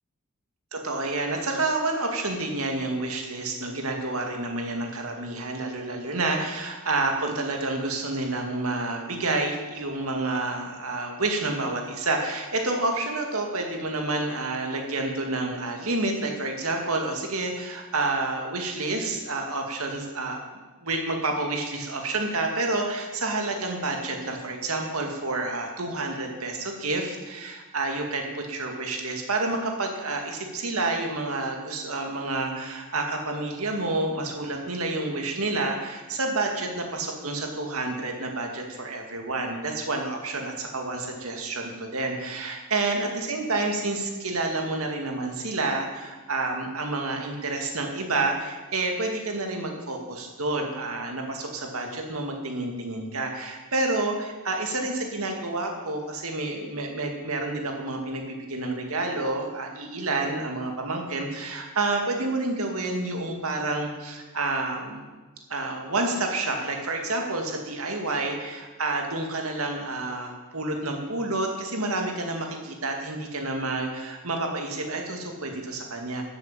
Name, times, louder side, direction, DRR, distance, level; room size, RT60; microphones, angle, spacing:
voice 1, 0.7-20.4 20.8-65.0 65.5-76.2, right 2 dB, 70° right, 2 dB, 2.3 m, -29 dB
13.0 x 7.9 x 7.5 m, 1.3 s
head